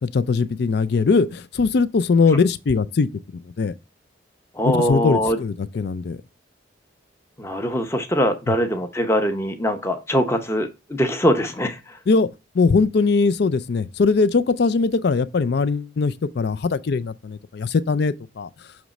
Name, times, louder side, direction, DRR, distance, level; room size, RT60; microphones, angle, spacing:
voice 1, 0.0-3.7 4.6-6.2 12.1-12.3 12.5-18.5, left 4 dB, 55° left, 0.4 m, -21 dB
voice 2, 4.5-5.4 7.4-12.0, equal, 15° left, 0.7 m, -22 dB
6.0 x 3.0 x 5.2 m
head